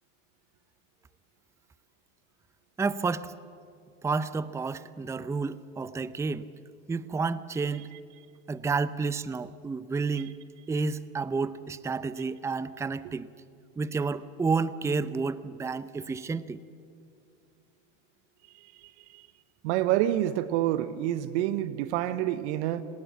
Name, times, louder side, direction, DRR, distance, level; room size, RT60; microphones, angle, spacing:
voice 1, 2.8-3.3 4.0-6.5 6.9-7.9 8.5-10.4 10.7-13.3 13.8-16.6, right 4 dB, 5° right, 17 dB, 0.6 m, -30 dB
voice 2, 18.8-19.3 19.6-22.8, right 13 dB, 60° right, 14 dB, 1.0 m, -28 dB
27.0 x 19.5 x 7.3 m, 2.4 s
hypercardioid pair, 95°, 39 cm